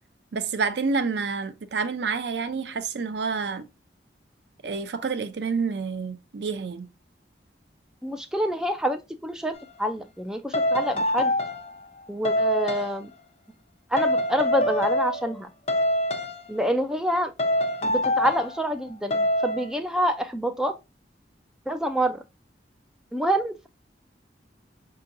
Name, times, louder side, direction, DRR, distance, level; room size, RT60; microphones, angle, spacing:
voice 1, 0.3-3.7 4.6-6.9, right 5 dB, 75° right, 0.5 m, -28 dB
voice 2, 8.0-11.3 12.1-13.1 13.9-15.5 16.5-17.3 17.8-20.8 21.7-22.2 23.1-23.7, equal, 5° right, 0.4 m, -27 dB
sound 1, 9.5-9.7 10.5-11.8 12.2-13.0 14.0-15.4 15.7-16.6 17.4-18.6 19.1-19.7, left 1 dB, 35° left, 0.7 m, -25 dB
5.4 x 2.8 x 2.5 m
head